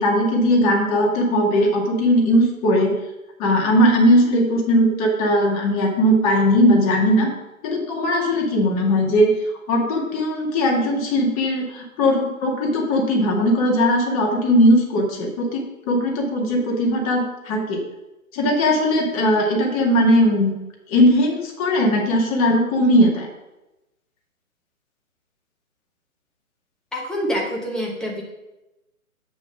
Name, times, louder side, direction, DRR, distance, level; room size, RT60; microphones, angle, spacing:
voice 1, 0.0-2.9 3.4-7.3 7.6-9.3 9.7-17.8 18.3-20.5 20.9-23.3, equal, 25° left, 0 dB, 2.0 m, -19 dB
voice 2, 26.9-28.2, equal, ahead, -2 dB, 0.7 m, -26 dB
7.5 x 7.0 x 6.1 m, 0.99 s
figure-of-eight pair, 135°, 42 cm